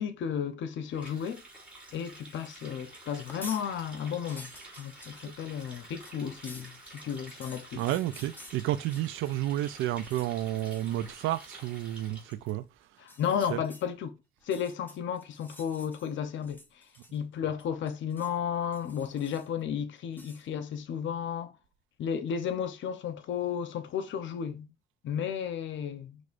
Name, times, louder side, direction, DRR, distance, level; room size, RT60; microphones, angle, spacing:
voice 1, 0.0-1.4 1.9-4.5 4.8-7.8 13.0-14.1 14.4-16.6 17.1-21.5 22.0-24.7 25.0-26.2, left 8 dB, 70° left, 0.8 m, -33 dB
Water tap faucet, 0.9-12.5, right 2 dB, 5° right, 3.1 m, -50 dB
sound 1, 3.1-3.7 4.0-9.4 9.7-10.3 10.6-11.0 11.3-11.6 13.0-13.9 14.4-16.1 16.4-17.3 17.6-18.4 18.7-19.6 20.1-20.5, left 1 dB, 10° left, 0.9 m, -51 dB
voice 2, 7.7-12.7 13.5-13.6, right 13 dB, 90° right, 0.4 m, -31 dB
6.1 x 3.2 x 2.5 m
cardioid pair, 90°, 20 cm